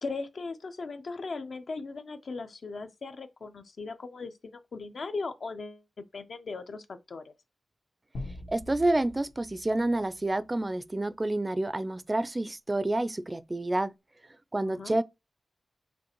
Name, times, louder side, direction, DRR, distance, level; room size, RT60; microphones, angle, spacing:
voice 1, 0.0-7.3 14.6-15.0, left 3 dB, 65° left, 0.5 m, -38 dB
sound 1, 8.1-11.0, left 1 dB, 85° left, 1.4 m, -44 dB
voice 2, 8.5-13.9 14.5-15.0, right 2 dB, 25° right, 0.3 m, -28 dB
5.2 x 3.2 x 2.9 m
wide cardioid pair, 75°, 0 cm